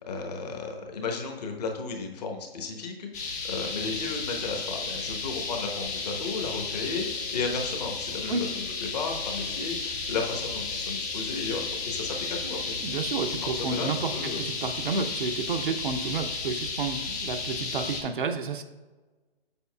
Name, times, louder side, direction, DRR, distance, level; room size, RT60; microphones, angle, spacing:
voice 1, 0.0-8.6 8.9-13.0 13.4-14.5, left 4 dB, 40° left, 2 dB, 1.0 m, -34 dB
sound 1, 3.1-18.0, left 4 dB, 20° left, 0.5 m, -33 dB
voice 2, 12.8-18.6, right 4 dB, 55° right, 7 dB, 0.6 m, -31 dB
7.0 x 6.2 x 2.3 m, 1.3 s
figure-of-eight pair, 140°, 31 cm